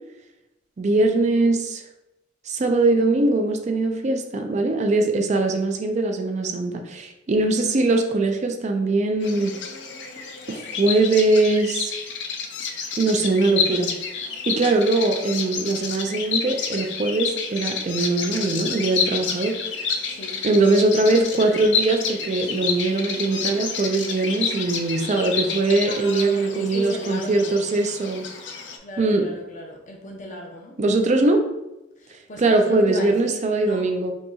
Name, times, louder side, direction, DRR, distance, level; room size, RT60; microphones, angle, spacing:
voice 1, 0.8-1.8 2.5-9.6 10.5-11.9 13.0-13.9 14.5-20.0 20.4-28.3 29.0-29.3 30.8-31.4 32.4-34.1, right 2 dB, 40° right, 4 dB, 0.4 m, -21 dB
Bird vocalization bird call bird song, 9.2-28.8, left 5 dB, 70° left, 0.5 m, -29 dB
voice 2, 25.9-27.5 28.8-30.7 32.0-33.9, left 1 dB, 45° left, 0 dB, 0.8 m, -36 dB
5.3 x 2.8 x 2.3 m, 0.93 s
head